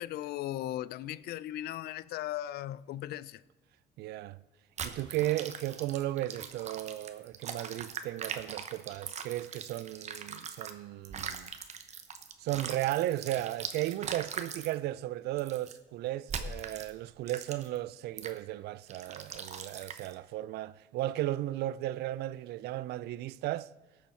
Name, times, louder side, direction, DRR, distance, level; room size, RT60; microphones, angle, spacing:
voice 1, 0.0-3.4, left 13 dB, 70° left, 0.4 m, -37 dB
voice 2, 4.0-4.4 4.8-11.5 12.4-23.7, right 15 dB, 75° right, 0.4 m, -35 dB
sound 1, 4.8-10.7 11.0-14.7 15.4-15.7 16.3-16.9 17.3-17.8 18.2-18.4 18.9-20.1, right 6 dB, 40° right, 1.0 m, -41 dB
18.0 x 7.1 x 4.4 m
cardioid pair, 110°, 17 cm